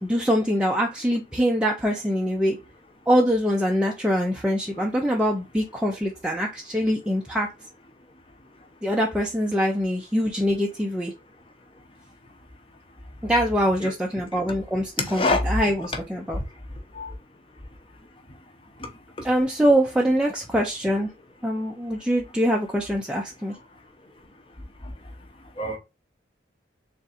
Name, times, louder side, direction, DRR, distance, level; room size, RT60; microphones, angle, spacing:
voice 1, 0.0-2.6 3.1-7.5 8.8-11.1 13.2-16.4 19.2-21.1 21.4-23.6, equal, 5° right, 0.4 m, -24 dB
voice 2, 15.0-15.4 17.0-17.1 25.6-25.8, left 3 dB, 30° left, 0.7 m, -24 dB
3.6 x 2.5 x 4.1 m
head